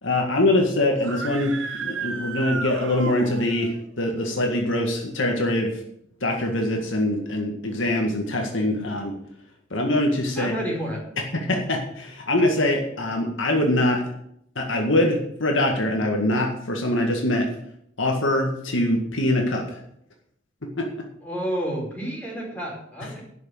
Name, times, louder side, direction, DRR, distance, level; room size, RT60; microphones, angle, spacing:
voice 1, 0.0-5.8 6.2-9.1 9.7-10.6 11.3-14.0 14.6-17.5 18.0-19.8 20.6-21.1, left 1 dB, 65° left, 1 dB, 1.9 m, -23 dB
Screaming, 0.9-3.7, right 4 dB, 65° right, 1.3 m, -33 dB
voice 2, 10.4-11.0 21.2-23.2, equal, 10° left, -3 dB, 4.6 m, -30 dB
12.0 x 6.5 x 7.9 m, 0.73 s
head